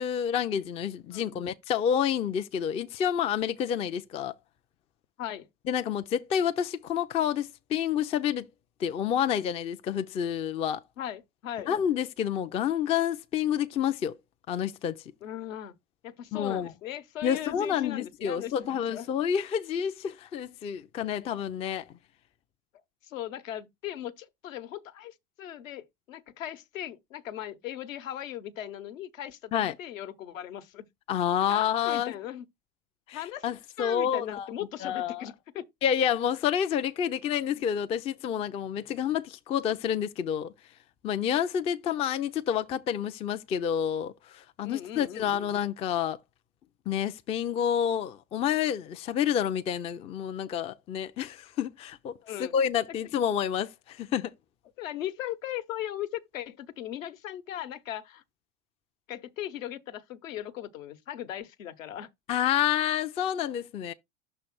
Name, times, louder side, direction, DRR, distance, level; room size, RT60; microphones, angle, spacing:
voice 1, 0.0-4.3 5.7-8.5 8.8-10.8 11.7-14.2 14.5-15.0 16.3-16.7 17.2-21.9 29.5-29.7 31.1-32.1 33.1-34.5 34.8-35.3 35.8-40.5 41.0-46.2 46.9-54.3 62.3-63.9, left 9 dB, 15° left, 0.3 m, -29 dB
voice 2, 1.1-1.5 5.2-5.5 11.0-11.7 15.2-15.7 16.0-19.1 23.0-30.9 31.5-32.5 33.1-33.4 33.8-35.7 44.6-45.5 52.2-52.5 54.8-58.2 59.1-62.1, left 11 dB, 70° left, 1.0 m, -38 dB
6.2 x 3.3 x 5.9 m
hypercardioid pair, 90°, 40 cm